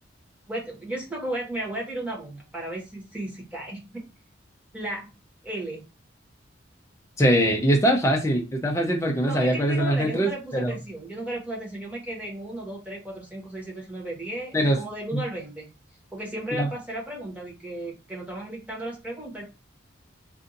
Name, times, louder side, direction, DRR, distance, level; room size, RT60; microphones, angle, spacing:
voice 1, 0.5-4.1 4.7-5.1 5.4-5.8 8.0-8.1 9.2-15.7 16.1-19.4, right 1 dB, 5° right, -3 dB, 1.1 m, -34 dB
voice 2, 7.2-10.8 14.5-14.8 15.1-15.2 16.5-16.7, right 1 dB, 15° left, 1 dB, 0.5 m, -22 dB
2.6 x 2.5 x 3.8 m, 0.28 s
head